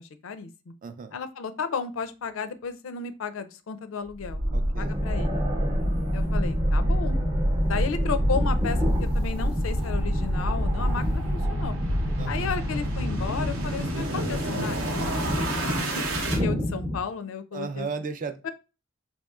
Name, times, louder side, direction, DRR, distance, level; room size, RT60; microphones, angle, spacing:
voice 1, 0.0-0.7 1.1-4.4 4.8-5.4 6.1-7.2 7.6-11.7 12.3-15.1 15.4-17.9 18.4-18.5, left 5 dB, 85° left, 11 dB, 0.4 m, -34 dB
voice 2, 0.8-1.2 4.5-4.9 12.2-12.5 17.5-18.5, right 4 dB, 40° right, 9 dB, 0.4 m, -35 dB
sound 1, 4.2-16.4, equal, 80° right, 0.8 m, -27 dB
sound 2, 4.7-17.0, equal, 25° right, 0.8 m, -31 dB
4.2 x 2.8 x 2.3 m, 0.30 s
head